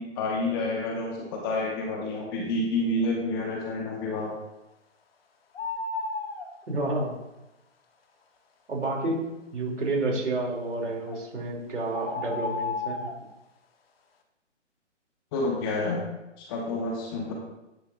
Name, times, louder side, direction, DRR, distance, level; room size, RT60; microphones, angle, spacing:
voice 1, 0.0-4.3 15.3-16.0 16.4-17.3, left 2 dB, 20° left, 0 dB, 1.0 m, -29 dB
sound 1, 5.5-6.5 11.1-11.2 11.9-13.2, left 3 dB, 50° left, 1.2 m, -32 dB
voice 2, 6.7-7.1 8.7-9.2 9.5-13.1, right 2 dB, 75° right, 0 dB, 3.0 m, -30 dB
10.0 x 6.9 x 2.6 m, 0.95 s
hypercardioid pair, 150°, 36 cm